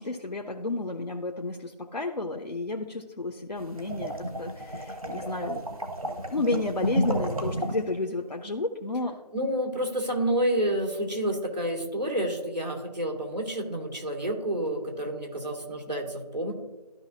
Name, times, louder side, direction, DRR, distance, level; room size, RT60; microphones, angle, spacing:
voice 1, 0.0-4.1 4.4-5.6 6.3-9.2, left 2 dB, 80° left, 3 dB, 0.9 m, -31 dB
sound 1, 3.6-7.9, equal, 60° right, 1.2 m, -31 dB
voice 2, 9.3-16.5, right 1 dB, 90° right, 1 dB, 2.2 m, -29 dB
13.5 x 5.0 x 2.7 m, 1.1 s
figure-of-eight pair, 180°, 21 cm